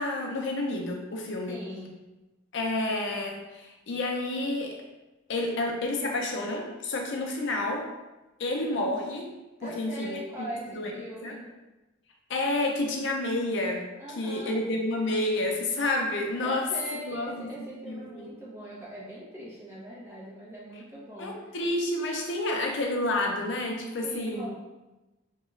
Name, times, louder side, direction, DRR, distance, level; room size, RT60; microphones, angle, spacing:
voice 1, 0.0-1.6 2.5-4.8 5.3-7.9 8.4-9.3 9.6-10.2 10.7-10.9 11.2-11.4 12.3-13.9 14.2-17.5 17.8-18.3 21.2-24.5, left 2 dB, 55° left, 0 dB, 0.4 m, -29 dB
voice 2, 1.5-1.9 9.6-11.4 14.0-14.6 16.4-21.5 24.0-24.5, right 1 dB, 10° right, -7 dB, 0.6 m, -41 dB
2.3 x 2.2 x 3.0 m, 1.1 s
head